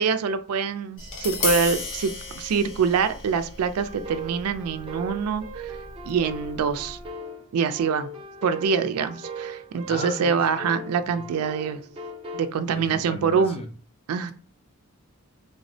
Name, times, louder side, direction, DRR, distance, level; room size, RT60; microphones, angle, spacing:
voice 1, 0.0-5.8 6.1-7.0 7.5-8.1 8.4-11.8 12.3-13.6 14.1-14.3, right 6 dB, 80° right, 0.3 m, -25 dB
Tap, 1.0-7.1, left 4 dB, 60° left, 0.7 m, -35 dB
sound 1, 3.8-12.5, right 2 dB, 25° right, 0.5 m, -39 dB
voice 2, 9.9-10.4 12.7-13.7, left 2 dB, 25° left, 0.4 m, -36 dB
3.4 x 2.0 x 2.6 m
head